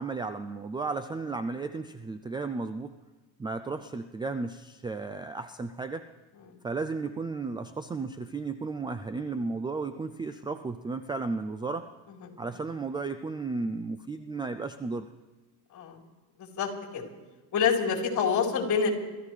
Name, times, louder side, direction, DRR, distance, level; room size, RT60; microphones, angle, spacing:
voice 1, 0.0-3.0 3.4-6.0 6.6-11.9 12.4-15.1, right 3 dB, 10° right, 9 dB, 0.4 m, -34 dB
voice 2, 16.4-17.0 17.5-18.9, left 6 dB, 40° left, -1 dB, 3.9 m, -27 dB
25.5 x 14.0 x 3.3 m, 1.2 s
supercardioid pair, 115°, 43 cm